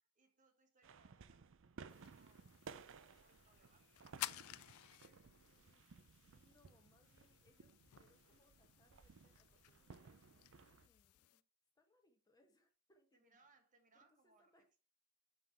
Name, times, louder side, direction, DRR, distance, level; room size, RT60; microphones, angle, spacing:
voice 1, 0.2-5.2 13.1-14.8, right 3 dB, 35° right, 1.4 m, -74 dB
sound 1, 0.8-10.9, right 5 dB, 60° right, 0.5 m, -59 dB
sound 2, 1.9-11.4, left 15 dB, 75° left, 0.3 m, -55 dB
voice 2, 5.2-5.8 6.3-11.4 11.7-13.4 13.9-14.7, left 1 dB, 15° left, 1.1 m, -76 dB
5.8 x 5.7 x 4.6 m
head